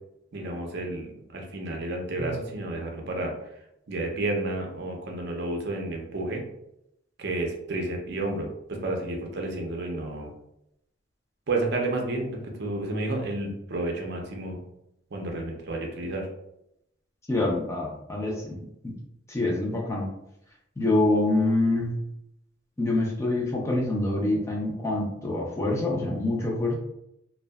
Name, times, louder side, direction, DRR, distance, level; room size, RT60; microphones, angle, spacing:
voice 1, 0.3-3.3 3.9-6.4 7.2-10.3 11.5-14.6 15.1-16.3, right 2 dB, 60° right, 1 dB, 0.5 m, -31 dB
voice 2, 17.3-18.9 19.3-20.1 20.8-22.0 22.8-26.7, left 2 dB, 15° left, -2 dB, 0.4 m, -26 dB
2.6 x 2.2 x 2.2 m, 0.81 s
head